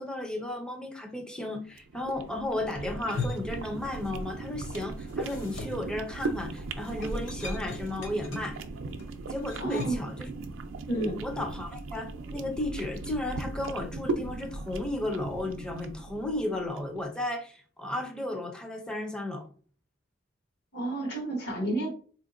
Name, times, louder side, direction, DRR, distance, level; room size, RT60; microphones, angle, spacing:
voice 1, 0.0-8.6 9.3-10.3 11.1-19.5, left 1 dB, 5° left, 3 dB, 0.4 m, -34 dB
sound 1, 1.7-17.0, right 3 dB, 85° right, 0.4 m, -38 dB
sound 2, 2.9-4.3 4.6-10.1, left 3 dB, 85° left, 0.7 m, -40 dB
voice 2, 9.6-10.1 10.9-11.2 20.7-21.9, right 2 dB, 60° left, -1 dB, 1.4 m, -30 dB
4.1 x 2.8 x 2.4 m, 0.42 s
head